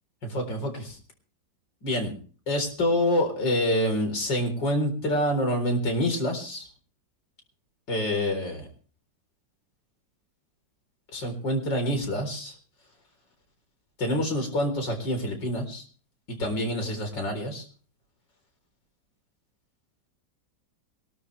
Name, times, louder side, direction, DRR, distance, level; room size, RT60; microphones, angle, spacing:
voice 1, 0.3-1.0 1.8-2.1 2.5-6.7 7.9-8.7 11.1-12.5 14.0-15.8 16.3-17.6, left 1 dB, 75° left, 4 dB, 4.8 m, -27 dB
23.0 x 13.0 x 3.4 m, 0.42 s
omnidirectional pair, 2.0 m